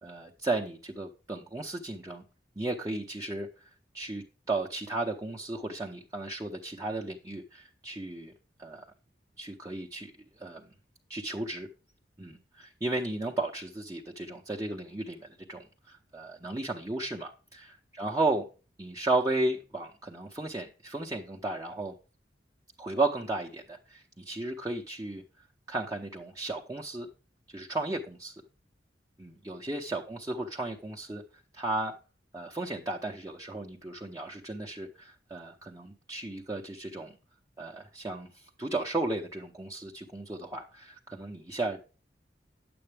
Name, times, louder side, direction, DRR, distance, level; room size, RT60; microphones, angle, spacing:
voice 1, 0.0-2.2 2.6-8.3 8.6-8.8 9.4-10.7 11.1-11.7 12.2-18.5 18.8-21.9 22.8-25.2 25.7-27.1 27.5-28.3 29.2-31.2 31.5-31.9 32.3-37.2 37.6-41.8, right 2 dB, 20° right, 1 dB, 0.8 m, -34 dB
9.7 x 7.8 x 3.4 m, 0.35 s
head